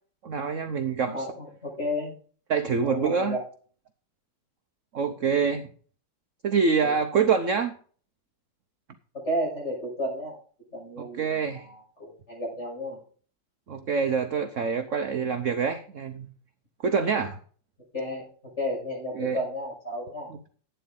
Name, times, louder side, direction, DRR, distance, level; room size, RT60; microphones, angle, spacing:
voice 1, 0.2-1.3 2.5-3.4 4.9-5.7 6.4-7.7 11.0-11.7 13.7-16.3 16.8-17.4 19.1-19.4 20.3-20.4, right 5 dB, 60° right, 7 dB, 0.8 m, -26 dB
voice 2, 1.0-2.2 2.8-3.4 5.0-5.2 6.8-7.0 9.1-10.4 10.7-13.0 15.1-15.3 17.9-18.3 18.6-20.3, left 1 dB, 30° left, -2 dB, 6.4 m, -33 dB
11.5 x 9.1 x 3.8 m, 0.44 s
omnidirectional pair, 2.4 m